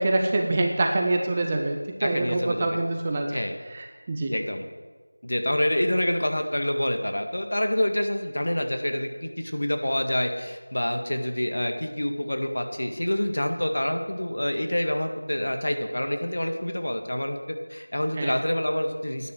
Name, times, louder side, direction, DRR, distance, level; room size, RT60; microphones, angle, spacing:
voice 1, 0.0-3.4 3.7-4.3 18.2-18.4, right 2 dB, 15° right, 3 dB, 0.6 m, -25 dB
voice 2, 2.0-2.8 3.3-3.6 4.3-4.7 5.2-19.3, left 1 dB, 60° left, 5 dB, 1.8 m, -27 dB
11.0 x 9.6 x 7.7 m, 1.3 s
figure-of-eight pair, 175°, 0 cm